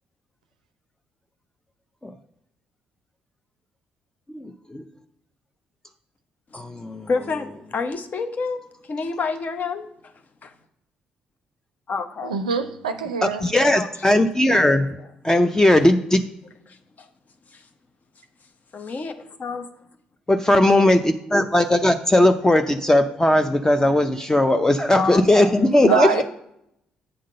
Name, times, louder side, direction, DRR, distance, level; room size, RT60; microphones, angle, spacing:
voice 1, 4.3-4.8 6.5-7.1 13.2-14.9 15.2-16.2 20.3-26.2, left 1 dB, 15° left, 8 dB, 0.6 m, -18 dB
voice 2, 6.5-10.1 10.4-10.5 11.9-12.3 13.7-13.9 14.5-15.1 16.7-17.1 17.5-17.7 18.7-19.7 24.9-26.2, left 4 dB, 45° left, 8 dB, 0.9 m, -30 dB
voice 3, 12.2-13.5 25.8-26.2, right 6 dB, 90° right, 9 dB, 0.4 m, -24 dB
7.8 x 3.7 x 6.5 m, 0.80 s
hypercardioid pair, 45°, 4 cm